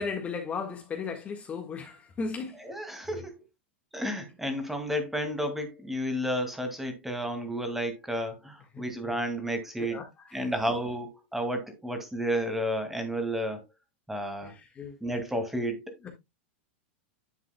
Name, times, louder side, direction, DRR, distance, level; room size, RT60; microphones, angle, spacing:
voice 1, 0.0-2.6 3.1-3.2 8.7-8.8 9.8-10.5 14.4-15.0 16.0-16.1, left 5 dB, 20° left, 1.6 m, -36 dB
voice 2, 2.6-3.4 3.9-10.0 10.3-13.6 14.1-14.5 15.0-16.1, equal, 5° right, 2.2 m, -32 dB
10.0 x 7.3 x 2.2 m
supercardioid pair, 130°, 6 cm